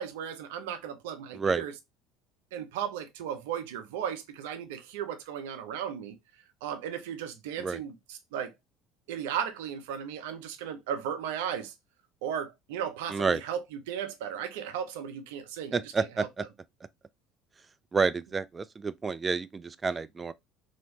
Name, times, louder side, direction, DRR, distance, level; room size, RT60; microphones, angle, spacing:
voice 1, 0.0-1.7 2.5-6.2 6.6-8.5 9.1-11.7 12.2-16.5, right 8 dB, 80° right, 0.6 m, -36 dB
voice 2, 15.7-16.4 17.9-20.3, right 4 dB, 25° right, 0.3 m, -29 dB
3.0 x 2.8 x 2.8 m
hypercardioid pair, 70°, 0 cm